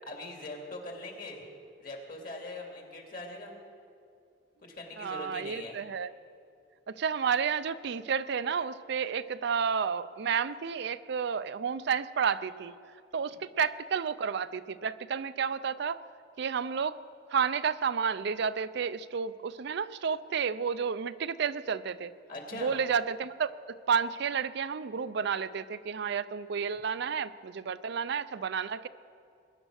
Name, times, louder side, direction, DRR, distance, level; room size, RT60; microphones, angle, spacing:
voice 1, 0.1-1.4 1.8-3.5 4.6-5.8 22.3-22.8, left 2 dB, 50° left, 1 dB, 2.7 m, -41 dB
voice 2, 5.0-6.1 7.0-12.8 13.1-16.0 16.4-17.0 17.3-22.1 22.5-23.5 23.9-28.9, right 6 dB, 65° right, 13 dB, 0.5 m, -31 dB
22.0 x 10.0 x 6.4 m, 2.4 s
head